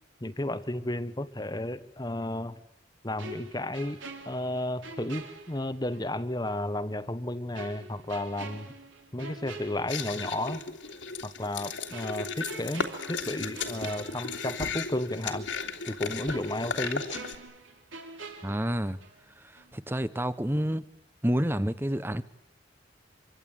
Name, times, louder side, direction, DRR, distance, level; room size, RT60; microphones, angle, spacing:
voice 1, 0.2-2.6 3.0-4.0 4.2-8.7 9.1-10.6 11.2-15.5 15.9-17.0, left 1 dB, 20° left, 12 dB, 1.2 m, -33 dB
sound 1, 3.2-6.1 6.5-6.6 7.5-10.5 10.8-11.0 11.9-14.9 15.2-15.3 16.3-19.3 19.6-19.8, right 3 dB, 85° right, 3.8 m, -46 dB
sound 2, 9.9-17.3, left 4 dB, 75° left, 3.2 m, -35 dB
voice 2, 18.4-19.0 19.5-20.8 21.2-22.2, equal, 10° right, 13 dB, 1.0 m, -29 dB
26.0 x 24.0 x 9.3 m, 0.76 s
head